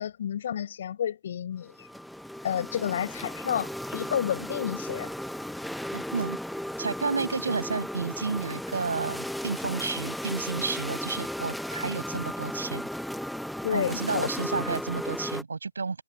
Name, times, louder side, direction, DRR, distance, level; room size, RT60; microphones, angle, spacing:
voice 1, 0.0-1.7 2.4-5.1 13.6-14.3, left 9 dB, 30° left, 7.6 m, -30 dB
sound 1, 1.7-15.4, equal, ahead, 0.7 m, -35 dB
voice 2, 5.9-6.4 6.8-12.9 13.7-16.0, right 4 dB, 55° right, 7.6 m, -31 dB
figure-of-eight pair, 165°, 0 cm